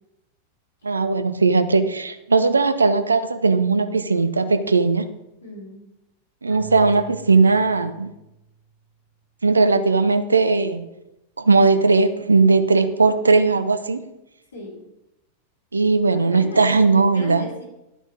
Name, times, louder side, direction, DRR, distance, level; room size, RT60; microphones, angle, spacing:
voice 1, 0.8-5.1 6.4-8.1 9.4-10.9 11.4-14.0 15.7-17.5, right 3 dB, 75° right, 11 dB, 0.7 m, -18 dB
voice 2, 5.4-5.9 14.5-14.8 16.1-17.6, left 1 dB, 65° left, -4 dB, 3.8 m, -36 dB
Keyboard (musical), 6.5-8.8, right 7 dB, 10° right, 4.1 m, -43 dB
11.5 x 6.3 x 5.3 m, 0.90 s
figure-of-eight pair, 90°, 0 cm